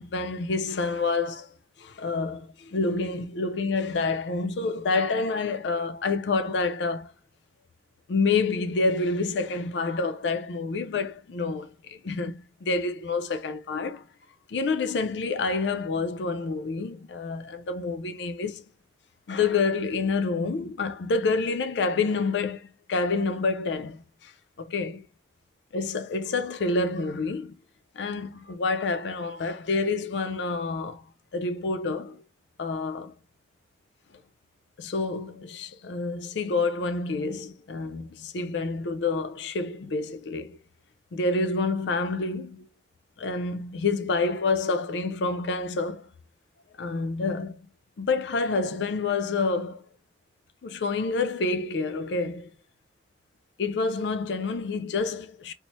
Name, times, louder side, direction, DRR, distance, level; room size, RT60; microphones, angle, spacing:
voice 1, 0.0-1.5 1.8-7.1 8.1-14.0 14.5-18.6 19.3-24.3 24.6-25.1 25.7-27.6 28.0-31.0 31.3-32.2 32.6-33.1 34.8-40.6 41.1-42.7 43.2-46.1 46.8-47.7 48.0-49.8 50.6-52.5 53.6-55.5, left 3 dB, 70° left, 0.4 m, -28 dB
3.0 x 2.0 x 4.1 m
head